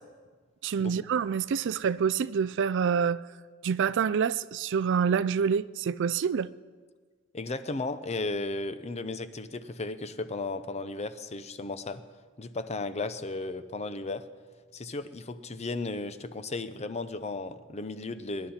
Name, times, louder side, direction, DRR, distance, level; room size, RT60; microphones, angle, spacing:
voice 1, 0.6-3.2 3.6-6.5, right 6 dB, 55° right, 0.4 m, -27 dB
voice 2, 7.3-12.0 12.4-14.3 14.7-18.5, left 3 dB, 30° left, 0.7 m, -35 dB
23.0 x 11.5 x 4.4 m
head